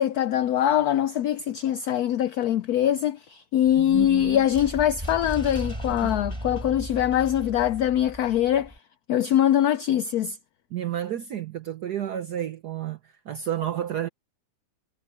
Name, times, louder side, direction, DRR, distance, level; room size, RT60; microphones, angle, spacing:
voice 1, 0.0-8.7 9.1-10.4, left 11 dB, 90° left, 0.8 m, -23 dB
sound 1, 3.6-8.8, right 1 dB, 10° right, 4.6 m, -36 dB
voice 2, 3.8-4.5 6.0-6.2 10.7-14.1, right 11 dB, 60° right, 1.3 m, -31 dB
omnidirectional pair, 2.2 m